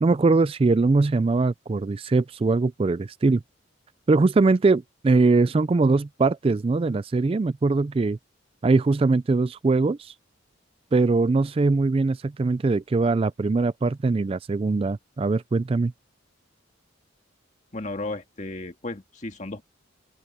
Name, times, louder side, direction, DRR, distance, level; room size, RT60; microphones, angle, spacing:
voice 1, 0.0-3.4 4.1-8.2 8.6-10.1 10.9-15.9, right 3 dB, 30° right, 0.3 m, -21 dB
voice 2, 17.7-19.6, left 2 dB, 35° left, 1.9 m, -34 dB
open air
head